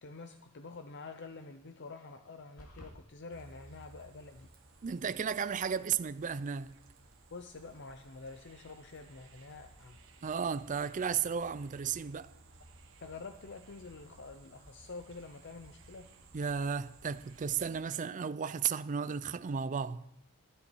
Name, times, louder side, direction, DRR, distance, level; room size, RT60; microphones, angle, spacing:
voice 1, 0.0-4.5 7.3-10.0 13.0-16.1, left 3 dB, 55° left, 0.7 m, -47 dB
sound 1, 2.6-3.0, equal, 85° left, 2.8 m, -50 dB
sound 2, 3.3-17.8, right 2 dB, 65° right, 1.5 m, -58 dB
voice 2, 4.8-6.7 10.2-12.3 16.3-20.0, right 6 dB, 35° right, 0.4 m, -34 dB
15.5 x 12.0 x 4.6 m
head